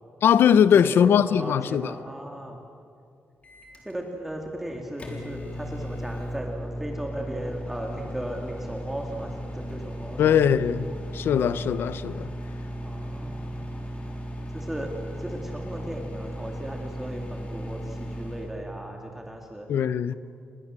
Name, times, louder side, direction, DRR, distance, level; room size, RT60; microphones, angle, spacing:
voice 1, 0.2-1.9 10.2-10.9 11.1-12.3 19.7-20.1, left 8 dB, 70° left, 0.9 m, -20 dB
voice 2, 0.7-2.6 3.8-10.4 12.8-13.7 14.5-14.9 15.2-19.7, right 1 dB, 5° right, 2.4 m, -36 dB
Microwave oven, 3.4-18.5, equal, 30° left, 3.8 m, -36 dB
30.0 x 22.0 x 7.7 m
wide cardioid pair, 160°, 4 cm